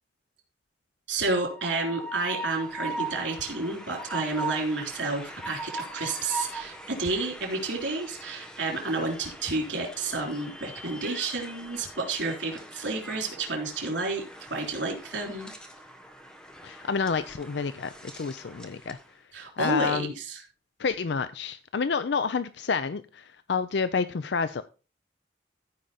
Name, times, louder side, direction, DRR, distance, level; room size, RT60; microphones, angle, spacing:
voice 1, 1.1-14.2 14.5-15.5 19.3-20.4, right 3 dB, 80° right, 1 dB, 3.4 m, -30 dB
Train, 1.3-19.1, right 2 dB, 5° left, 1.1 m, -41 dB
voice 2, 16.6-19.0 19.6-20.1 20.8-24.6, left 5 dB, 70° left, 12 dB, 0.5 m, -29 dB
14.5 x 5.0 x 4.2 m, 0.33 s
head